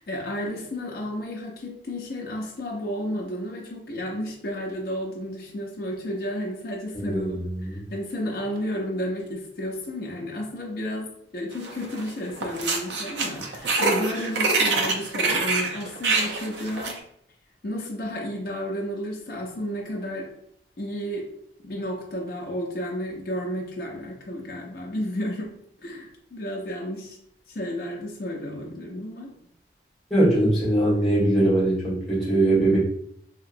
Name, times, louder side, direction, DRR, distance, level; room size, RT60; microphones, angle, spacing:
voice 1, 0.0-17.0 17.6-20.3 20.8-21.3 21.6-25.5 25.8-27.2 27.5-29.3, equal, 55° left, -1 dB, 0.5 m, -32 dB
voice 2, 6.9-7.6 30.1-32.8, right 1 dB, ahead, -10 dB, 1.4 m, -21 dB
sound 1, 11.6-12.1 12.4-17.0, right 3 dB, 80° right, 0.5 m, -25 dB
2.9 x 2.9 x 2.5 m, 0.72 s
head